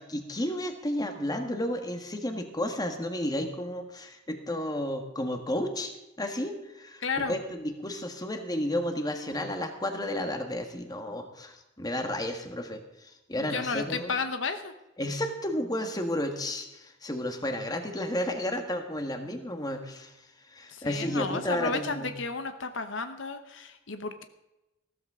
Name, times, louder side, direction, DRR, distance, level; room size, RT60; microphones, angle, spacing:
voice 1, 0.0-5.9 6.2-14.2 15.0-20.1 20.5-22.1, left 1 dB, 20° left, 5 dB, 1.5 m, -32 dB
voice 2, 7.0-7.3 13.4-14.7 20.7-24.2, left 4 dB, 70° left, 8 dB, 1.0 m, -33 dB
15.0 x 13.5 x 3.7 m, 0.96 s
head